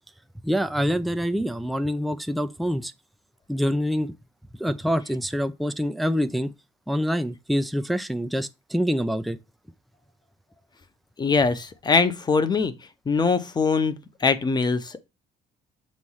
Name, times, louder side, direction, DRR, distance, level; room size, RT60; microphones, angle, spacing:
voice 1, 0.4-2.9 3.5-4.1 4.6-6.5 6.9-9.4, equal, ahead, 0.5 m, -26 dB
voice 2, 11.2-12.7 13.1-15.0, left 4 dB, 25° left, 0.8 m, -22 dB
7.5 x 3.1 x 5.5 m
cardioid pair, 110°, 17 cm